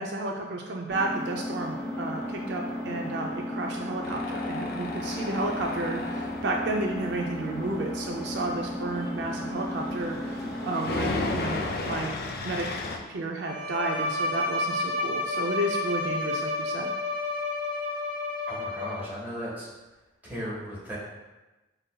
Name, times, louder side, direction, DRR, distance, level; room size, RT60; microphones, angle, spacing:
voice 1, 0.0-12.2 12.4-12.7 13.1-16.9, right 2 dB, 65° right, 1 dB, 0.4 m, -32 dB
Engine, 0.9-10.9, left 1 dB, 5° left, 1.2 m, -34 dB
Tools, 4.0-13.0, left 3 dB, 55° left, 0.4 m, -35 dB
Bowed string instrument, 13.4-19.2, left 2 dB, 85° right, 1.3 m, -30 dB
voice 2, 18.5-19.7 20.2-21.0, equal, 10° right, -8 dB, 1.2 m, -36 dB
6.5 x 2.6 x 2.2 m, 1.1 s
head